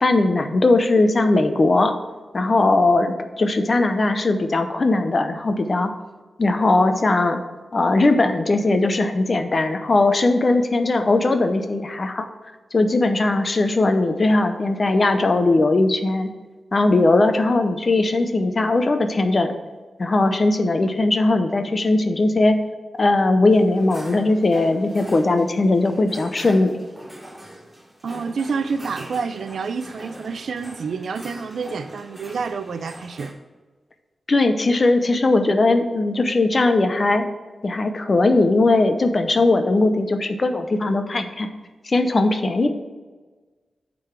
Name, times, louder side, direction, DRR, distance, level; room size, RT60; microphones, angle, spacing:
voice 1, 0.0-1.9 2.3-5.9 6.4-7.4 7.7-12.3 12.7-16.3 16.7-19.5 20.0-22.6 23.0-26.7 34.3-37.3 37.6-41.5 41.8-42.7, left 2 dB, 35° left, 7 dB, 0.6 m, -19 dB
sound 1, 23.5-33.3, equal, 10° right, 1.6 m, -42 dB
voice 2, 28.0-33.3, right 5 dB, 70° right, 12 dB, 0.4 m, -28 dB
8.1 x 3.8 x 5.8 m, 1.3 s
wide cardioid pair, 170°, 0 cm